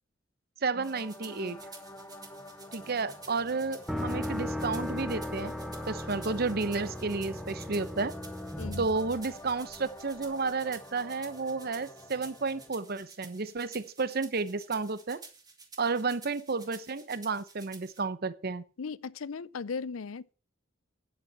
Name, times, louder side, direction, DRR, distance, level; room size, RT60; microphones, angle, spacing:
voice 1, 0.6-1.6 2.7-5.5 5.9-8.1 8.8-15.2 15.8-18.6, right 4 dB, 50° right, 0.8 m, -32 dB
sound 1, 0.7-12.7, left 1 dB, 15° left, 1.3 m, -49 dB
sound 2, 0.8-18.0, right 4 dB, 20° right, 2.6 m, -52 dB
sound 3, 3.9-9.8, left 1 dB, ahead, 0.9 m, -37 dB
voice 2, 18.8-20.3, left 5 dB, 90° left, 0.6 m, -37 dB
10.5 x 8.2 x 7.4 m
head